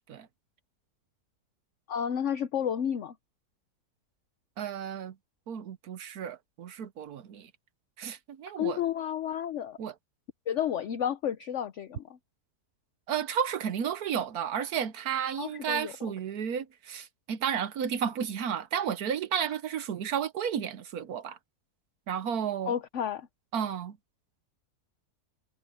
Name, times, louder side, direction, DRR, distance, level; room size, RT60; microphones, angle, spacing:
voice 1, 1.9-3.1 8.6-9.8 10.5-12.0 15.4-15.9 22.6-23.3, left 9 dB, 60° left, 1.0 m, -31 dB
voice 2, 4.6-5.1 5.5-7.5 8.0-8.8 9.8-9.9 13.1-21.4 22.1-22.7 23.5-24.0, right 8 dB, 75° right, 1.4 m, -32 dB
omnidirectional pair, 1.6 m